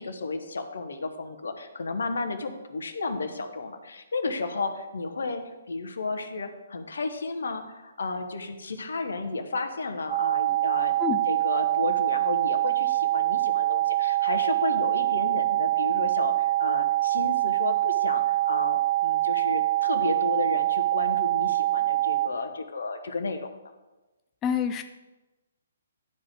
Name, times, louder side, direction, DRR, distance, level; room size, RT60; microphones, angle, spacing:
voice 1, 0.0-11.0 11.3-23.5, left 3 dB, 65° left, 8 dB, 1.0 m, -33 dB
sound 1, 10.1-22.3, right 15 dB, 20° right, 0.7 m, -24 dB
voice 2, 24.4-24.8, left 8 dB, 20° left, 8 dB, 0.3 m, -26 dB
11.0 x 4.9 x 4.9 m, 1.1 s
figure-of-eight pair, 130°, 0 cm